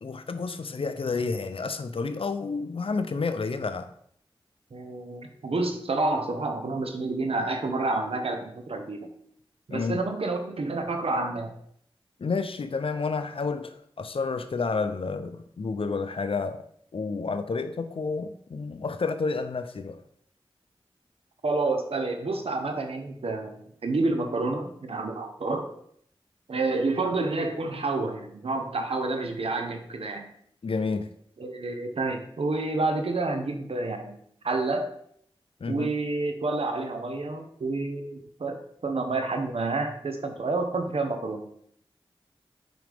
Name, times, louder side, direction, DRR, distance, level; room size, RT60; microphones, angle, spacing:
voice 1, 0.0-3.9 9.7-10.0 12.2-16.7 16.9-20.0 30.6-31.1 35.6-35.9, left 4 dB, 70° left, 10 dB, 0.5 m, -30 dB
voice 2, 4.7-9.1 9.7-11.5 21.4-25.7 26.5-30.3 31.4-34.9 35.7-41.4, right 3 dB, 85° right, 5 dB, 0.8 m, -29 dB
6.2 x 5.0 x 3.4 m, 0.66 s
cardioid pair, 40°, 10 cm